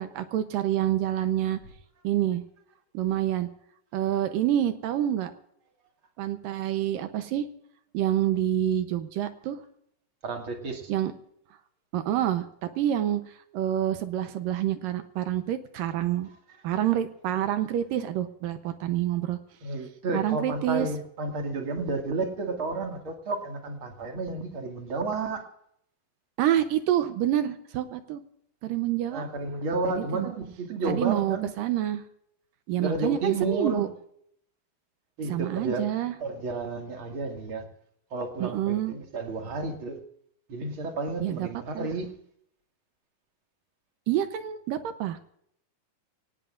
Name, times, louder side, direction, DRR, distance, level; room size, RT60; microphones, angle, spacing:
voice 1, 0.0-1.6 2.0-2.4 2.9-3.5 3.9-5.3 6.2-7.5 7.9-9.6 10.9-11.1 11.9-13.2 13.5-16.3 16.6-19.4 20.1-20.9 26.4-28.2 28.6-29.2 29.8-30.3 30.8-32.0 32.7-33.9 35.2-36.2 38.4-38.9 41.2-41.9 44.1-45.3, right 11 dB, 75° right, 9 dB, 2.3 m, -27 dB
voice 2, 10.2-10.9 19.6-25.4 29.1-31.5 32.8-33.9 35.2-35.8 36.2-37.6 38.1-40.0 40.5-42.1, right 3 dB, 40° right, 2 dB, 2.4 m, -31 dB
25.0 x 18.5 x 2.5 m, 0.70 s
omnidirectional pair, 4.4 m